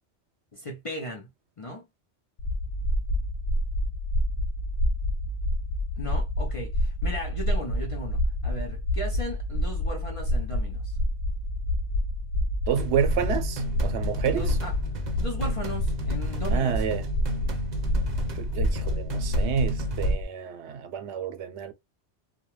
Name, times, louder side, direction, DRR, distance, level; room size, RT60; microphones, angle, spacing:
voice 1, 0.5-1.3 1.6-1.8 6.0-11.0 14.3-14.7 15.2-16.8, left 1 dB, 40° left, 0.5 m, -37 dB
sound 1, 2.4-20.2, equal, 85° left, 0.9 m, -28 dB
voice 2, 12.7-14.6 16.5-17.0 18.4-21.7, right 8 dB, 85° right, 0.9 m, -29 dB
sound 2, 12.8-20.1, left 1 dB, 45° right, 0.7 m, -33 dB
2.2 x 2.2 x 2.9 m
omnidirectional pair, 1.1 m